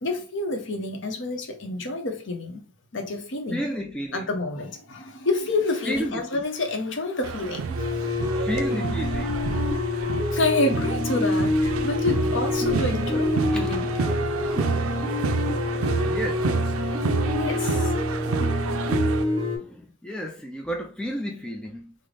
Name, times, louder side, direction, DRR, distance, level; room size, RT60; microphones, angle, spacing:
voice 1, 0.0-2.6 2.9-3.6 4.1-7.9 10.3-13.9 17.3-17.9, left 2 dB, 60° left, 0.7 m, -28 dB
voice 2, 3.5-4.3 5.8-6.4 8.0-10.0 13.1-13.3 13.5-13.8 15.7-16.5 19.4-21.9, equal, 5° left, 0.3 m, -33 dB
sound 1, 7.2-19.2, right 5 dB, 85° right, 0.4 m, -29 dB
sound 2, 7.8-19.6, left 2 dB, 25° right, 1.2 m, -27 dB
3.8 x 2.0 x 3.2 m
head